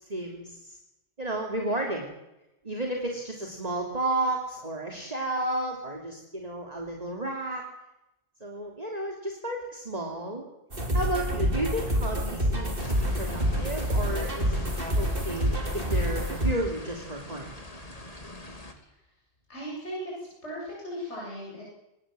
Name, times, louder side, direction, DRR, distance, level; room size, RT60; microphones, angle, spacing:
voice 1, 0.1-0.8 1.2-2.1 2.6-7.6 8.4-10.4 10.9-14.6 15.0-17.5, right 1 dB, 35° right, 0 dB, 3.2 m, -32 dB
sound 1, 10.7-16.5, equal, 50° right, 3.9 m, -27 dB
sound 2, 12.8-18.7, left 1 dB, 35° left, 2.9 m, -43 dB
voice 2, 19.5-21.6, equal, 85° left, -5 dB, 8.2 m, -37 dB
26.0 x 20.0 x 7.8 m, 0.91 s
omnidirectional pair, 1.2 m